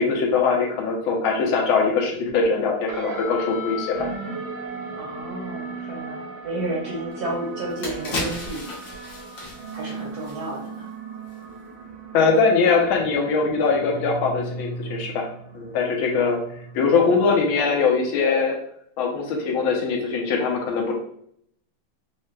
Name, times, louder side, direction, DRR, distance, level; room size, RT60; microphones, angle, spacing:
voice 1, 0.0-4.0 12.1-15.3 15.5-16.4 16.7-18.6 19.0-20.9, left 4 dB, 80° left, 0 dB, 1.5 m, -21 dB
sound 1, 2.9-17.6, right 2 dB, 85° right, 1.6 m, -36 dB
voice 2, 4.9-8.7 9.7-10.9, right 2 dB, 65° right, -2 dB, 1.0 m, -31 dB
sound 2, 7.1-7.2 7.6-10.9 11.2-11.4, left 1 dB, 60° left, 1.7 m, -34 dB
4.6 x 2.1 x 3.2 m, 0.67 s
omnidirectional pair, 2.3 m